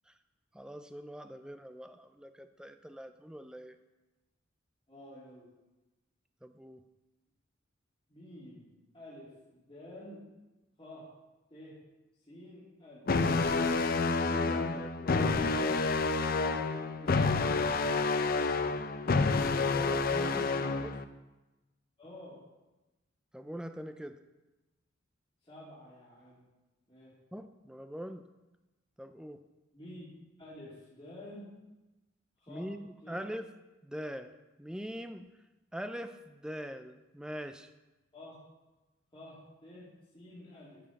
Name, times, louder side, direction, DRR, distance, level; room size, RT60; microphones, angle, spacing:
voice 1, 0.5-3.8 6.4-6.8 14.3-15.9 19.5-20.9 23.3-24.2 27.3-28.2 29.0-29.4 32.5-33.5 33.8-34.3 34.6-35.2 35.7-37.7, equal, 5° right, 8 dB, 0.4 m, -43 dB
voice 2, 4.9-5.5 8.1-8.7 8.9-10.2 10.8-11.1 11.5-11.8 12.3-13.0 22.0-22.4 25.4-26.4 26.9-27.1 29.7-31.5 32.4-32.7 33.0-33.2 38.1-38.3 39.1-39.9 40.1-40.8, left 1 dB, 25° left, -9 dB, 2.7 m, -50 dB
sound 1, 13.1-21.0, left 3 dB, 45° left, 0.5 m, -29 dB
13.5 x 4.9 x 5.9 m, 1.1 s
head